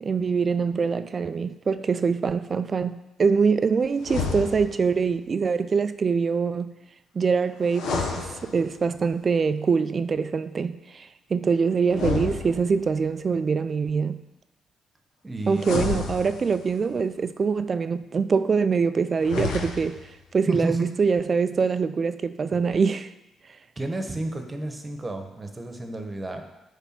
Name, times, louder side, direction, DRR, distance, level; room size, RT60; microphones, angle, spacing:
voice 1, 0.0-6.7 7.2-14.2 15.5-20.0 20.3-23.1, right 5 dB, 40° right, 0.3 m, -24 dB
sound 1, 4.0-4.9 7.6-9.0 11.9-13.0 15.5-16.8 19.1-20.1, left 5 dB, 80° left, 1.0 m, -30 dB
voice 2, 15.2-15.8 20.5-20.9 23.8-26.4, right 2 dB, 20° right, 1.1 m, -31 dB
10.0 x 3.4 x 5.9 m
cardioid pair, 90°, 0 cm